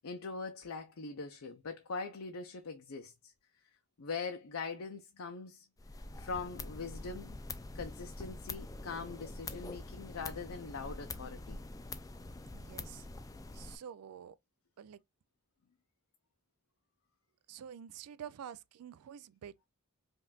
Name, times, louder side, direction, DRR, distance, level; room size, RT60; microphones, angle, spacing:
voice 1, 0.0-3.3 4.0-5.7 6.1-7.4 7.7-11.6, left 4 dB, 70° left, 0.6 m, -42 dB
sound 1, 5.8-13.8, left 3 dB, 15° left, 0.3 m, -45 dB
voice 2, 12.5-13.1 13.5-14.4 14.8-15.0 17.5-19.7, right 8 dB, 90° right, 0.4 m, -48 dB
5.2 x 2.5 x 2.3 m
head